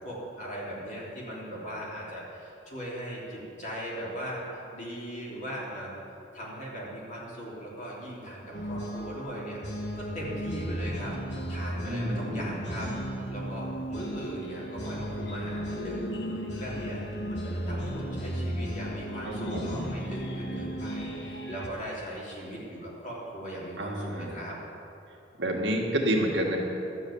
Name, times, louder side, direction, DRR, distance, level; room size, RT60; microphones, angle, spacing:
voice 1, 0.0-6.0 6.3-9.6 9.9-16.2 16.6-24.6, equal, 45° left, -5 dB, 3.2 m, -39 dB
sound 1, 8.5-21.7, equal, 65° left, 1.5 m, -35 dB
voice 2, 11.9-12.5 19.2-19.8 23.8-24.3 25.4-26.6, right 1 dB, 85° right, -1 dB, 1.9 m, -29 dB
12.5 x 7.1 x 8.6 m, 2.8 s
head